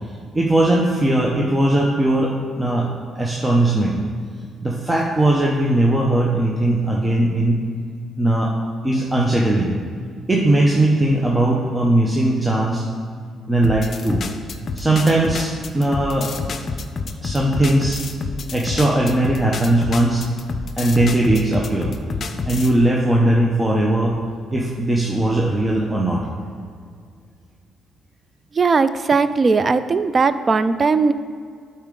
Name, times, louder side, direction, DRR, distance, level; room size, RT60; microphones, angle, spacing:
voice 1, 0.3-2.9 3.1-4.0 4.6-7.6 8.2-8.5 8.8-9.7 10.3-12.8 13.5-14.2 14.7-16.3 17.2-18.0 18.5-20.2 20.8-21.9 22.5-24.2 24.5-26.3, right 1 dB, 15° right, -2 dB, 0.8 m, -19 dB
sound 1, 13.6-22.7, left 4 dB, 50° left, 0.6 m, -28 dB
voice 2, 28.5-31.1, right 4 dB, 35° right, 13 dB, 0.4 m, -18 dB
12.0 x 4.3 x 3.8 m, 2.1 s
cardioid pair, 90°, 0 cm